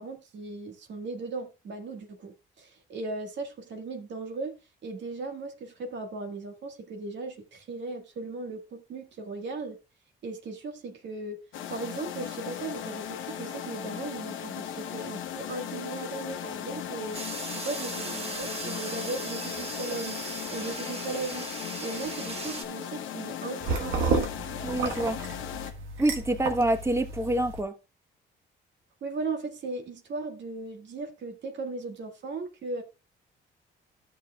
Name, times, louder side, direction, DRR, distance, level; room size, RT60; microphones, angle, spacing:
voice 1, 0.0-9.8 10.2-11.4 11.7-17.2 17.5-20.1 20.5-21.5 21.8-24.1 29.0-32.8, right 3 dB, 65° right, 1.7 m, -37 dB
sound 1, 11.5-25.7, left 9 dB, 80° left, 0.9 m, -37 dB
sound 2, 17.1-22.6, right 3 dB, 30° right, 1.5 m, -38 dB
Drinking from a mug, 23.6-27.6, right 4 dB, 85° right, 1.4 m, -31 dB
voice 2, 24.6-25.2 26.0-27.7, right 1 dB, 15° right, 1.1 m, -26 dB
12.5 x 6.9 x 2.3 m
cardioid pair, 90°, 20 cm